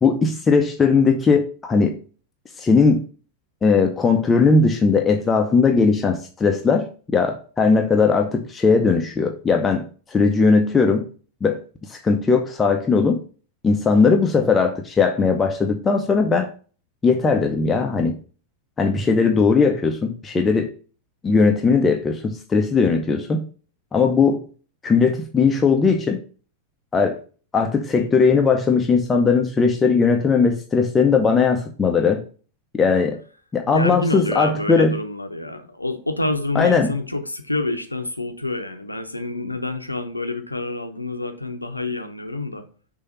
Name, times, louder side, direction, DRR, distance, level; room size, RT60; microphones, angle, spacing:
voice 1, 0.0-2.0 2.6-3.0 3.6-11.1 11.4-11.6 11.9-13.2 13.6-16.5 17.0-18.2 18.8-20.7 21.2-23.5 23.9-24.4 24.8-26.2 26.9-27.2 27.5-32.2 32.7-33.2 33.5-35.0 36.5-36.9, left 4 dB, 15° left, 3 dB, 0.7 m, -18 dB
voice 2, 33.7-42.7, left 2 dB, 85° left, 6 dB, 0.8 m, -27 dB
6.5 x 2.8 x 5.4 m, 0.39 s
figure-of-eight pair, 90°, 0 cm